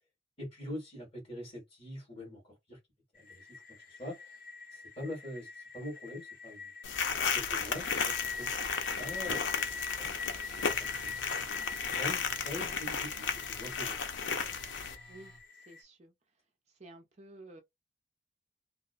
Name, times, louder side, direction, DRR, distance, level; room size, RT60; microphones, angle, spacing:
voice 1, 0.4-2.8 3.1-3.6 3.9-4.3 4.7-6.7 7.2-11.3 11.9-14.0, left 1 dB, 30° left, 1.7 m, -44 dB
sound 1, 3.2-15.8, left 4 dB, 50° left, 0.9 m, -43 dB
sound 2, 6.8-15.0, left 6 dB, 75° left, 0.6 m, -34 dB
Telephone, 10.4-15.4, equal, 5° left, 0.6 m, -58 dB
voice 2, 15.7-16.1 16.8-17.6, right 2 dB, 40° right, 0.5 m, -52 dB
2.9 x 2.1 x 2.4 m
head